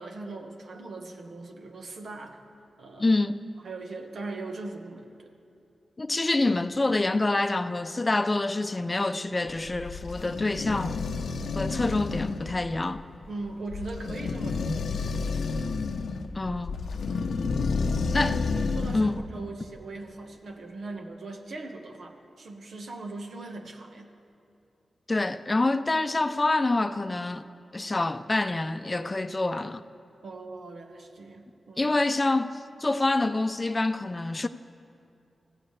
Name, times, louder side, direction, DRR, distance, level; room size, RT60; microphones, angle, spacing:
voice 1, 0.0-2.4 2.8-3.1 3.6-5.3 13.3-14.8 17.8-18.2 18.7-24.1 30.2-31.9, right 2 dB, 80° right, 1.4 m, -40 dB
voice 2, 3.0-3.5 6.0-11.0 11.5-13.0 16.3-16.8 18.1-18.4 18.9-19.2 25.1-27.4 27.7-29.8 31.8-34.5, left 2 dB, 30° left, 0.5 m, -26 dB
sound 1, 9.5-19.2, left 4 dB, 85° left, 0.7 m, -30 dB
24.5 x 15.5 x 3.3 m
cardioid pair, 65°, 0 cm